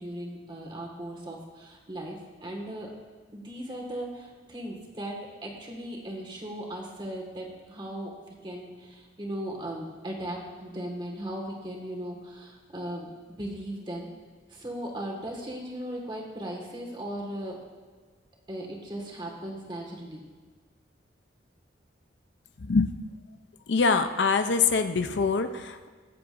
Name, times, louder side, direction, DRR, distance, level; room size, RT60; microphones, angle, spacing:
voice 1, 0.0-2.2 2.4-2.9 3.3-5.2 5.4-8.1 8.4-14.1 14.5-17.6 18.5-20.2, right 1 dB, 25° right, -1 dB, 1.8 m, -37 dB
voice 2, 22.6-22.9 23.7-25.9, left 4 dB, 75° left, 8 dB, 0.6 m, -24 dB
23.0 x 7.8 x 2.6 m, 1.5 s
head